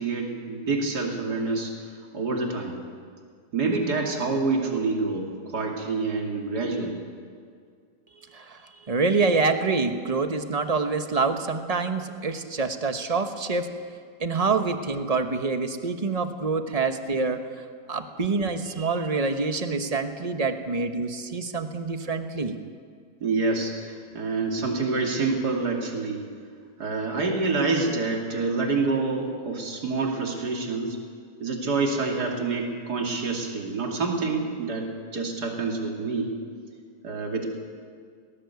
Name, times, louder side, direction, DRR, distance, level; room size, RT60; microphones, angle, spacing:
voice 1, 0.0-1.7 2.1-2.8 3.5-7.0 23.2-26.3 26.8-31.0 31.4-34.9 35.1-36.3 37.0-37.5, right 3 dB, 80° right, 1 dB, 3.2 m, -27 dB
voice 2, 8.3-13.7 14.2-22.6, right 4 dB, 25° right, 7 dB, 1.1 m, -26 dB
19.5 x 17.5 x 8.3 m, 2.1 s
omnidirectional pair, 1.7 m